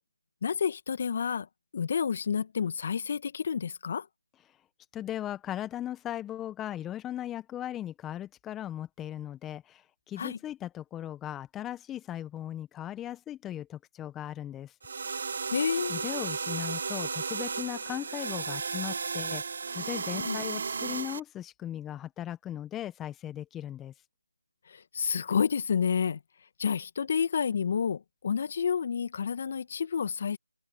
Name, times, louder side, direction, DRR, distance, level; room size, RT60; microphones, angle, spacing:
voice 1, 0.4-1.5 1.7-4.1 10.2-10.4 15.5-16.0 20.2-20.4 24.7-26.2 26.6-30.4, left 6 dB, 35° left, 1.7 m, -29 dB
voice 2, 4.9-14.7 15.9-19.4 19.7-23.9, left 11 dB, 10° left, 1.5 m, -38 dB
sound 1, 14.8-21.2, right 5 dB, 45° right, 1.7 m, -34 dB
figure-of-eight pair, 160°, 0 cm